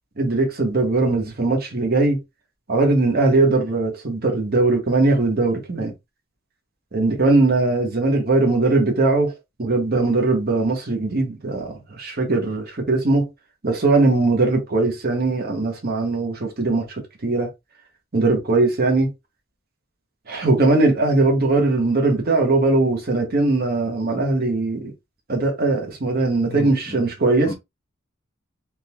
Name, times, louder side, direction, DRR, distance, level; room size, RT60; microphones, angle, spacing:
voice 1, 0.2-2.2 2.7-5.9 6.9-9.3 9.6-13.3 13.6-17.5 18.1-19.1 20.3-24.9 25.3-27.5, right 2 dB, 50° right, 1.1 m, -20 dB
voice 2, 26.4-27.1 27.4-27.5, equal, 25° left, 0.6 m, -32 dB
3.7 x 2.9 x 2.2 m
head